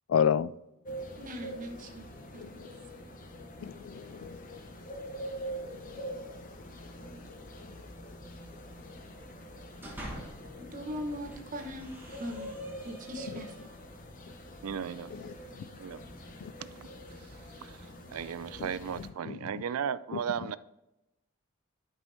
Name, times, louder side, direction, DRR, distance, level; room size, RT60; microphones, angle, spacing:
voice 1, 0.1-0.5 2.4-2.5 3.6-4.4 13.3-13.4 15.1-15.3 16.4-16.5 19.3-19.4 20.1-20.2, left 8 dB, 65° left, 17 dB, 0.3 m, -30 dB
sound 1, 0.9-19.1, equal, 40° left, 0.9 m, -45 dB
voice 2, 1.2-2.0 2.3-2.4 10.6-11.9 12.2-12.5 12.8-13.5, equal, 40° right, 3 dB, 1.1 m, -40 dB
sound 2, 9.6-10.6 11.1-13.9, right 1 dB, 10° right, 1.3 m, -47 dB
voice 3, 14.6-15.1 15.8-16.0 16.7-16.9 17.2-17.3 17.6-20.6, right 7 dB, 85° right, 17 dB, 0.4 m, -36 dB
10.5 x 5.5 x 2.7 m, 0.92 s
head